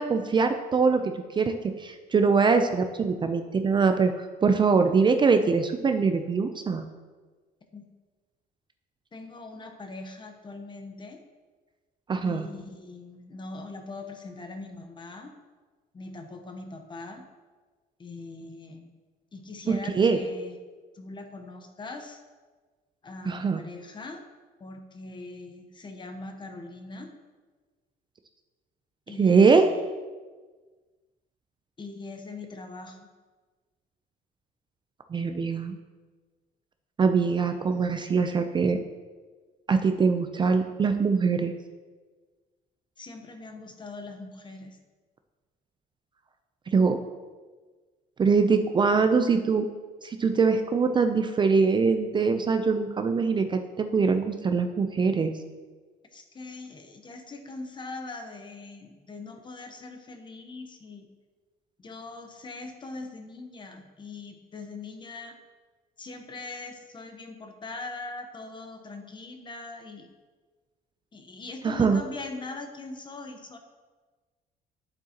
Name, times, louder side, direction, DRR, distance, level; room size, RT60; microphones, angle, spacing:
voice 1, 0.0-6.8 12.1-12.5 19.7-20.2 23.3-23.6 29.2-29.7 35.1-35.7 37.0-38.8 39.7-41.5 46.7-47.0 48.2-49.7 50.0-55.3 71.6-72.0, right 5 dB, 25° right, 7 dB, 0.5 m, -23 dB
voice 2, 9.1-11.2 12.2-15.3 15.9-17.3 18.0-18.9 19.3-20.6 20.9-22.2 23.0-24.3 24.6-27.1 29.1-29.8 31.8-33.1 43.0-44.8 56.1-61.1 61.8-65.4 66.0-70.1 71.1-73.6, left 3 dB, 25° left, 5 dB, 0.9 m, -41 dB
8.9 x 7.7 x 2.9 m, 1.4 s
cardioid pair, 110°, 17 cm